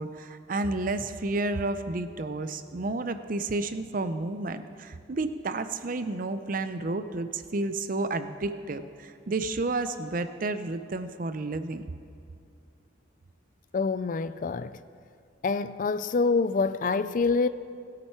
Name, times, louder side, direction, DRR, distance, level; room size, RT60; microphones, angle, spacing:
voice 1, 0.0-11.9, right 2 dB, 45° right, 0.5 m, -31 dB
voice 2, 13.7-14.8 15.4-17.5, left 4 dB, 40° left, 0.3 m, -26 dB
19.5 x 8.9 x 4.5 m
head